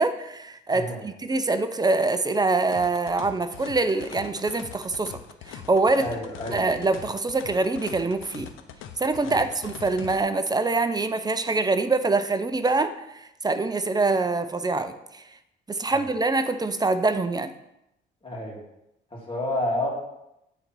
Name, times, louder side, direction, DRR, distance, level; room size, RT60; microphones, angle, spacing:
voice 1, 0.0-5.2 5.5-6.1 6.5-8.5 9.0-15.2 15.7-17.5, right 3 dB, 20° right, 10 dB, 0.5 m, -24 dB
sound 1, 2.7-10.2, left 8 dB, 85° left, 0.6 m, -42 dB
voice 2, 6.0-6.6 9.3-9.4 15.9-16.0 18.2-18.6 19.1-19.9, left 1 dB, 25° left, -4 dB, 2.8 m, -30 dB
8.2 x 3.9 x 4.6 m, 0.84 s
cardioid pair, 90°, 20 cm